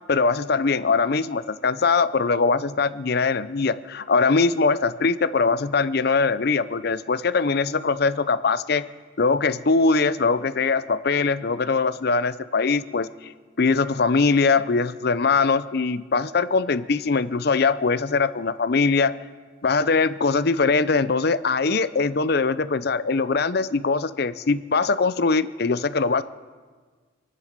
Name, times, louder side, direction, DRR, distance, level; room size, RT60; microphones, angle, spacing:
voice 1, 0.1-8.8 9.2-13.3 13.6-19.1 19.6-26.2, left 4 dB, 55° left, 15 dB, 0.6 m, -22 dB
27.0 x 9.5 x 5.2 m, 1.5 s
head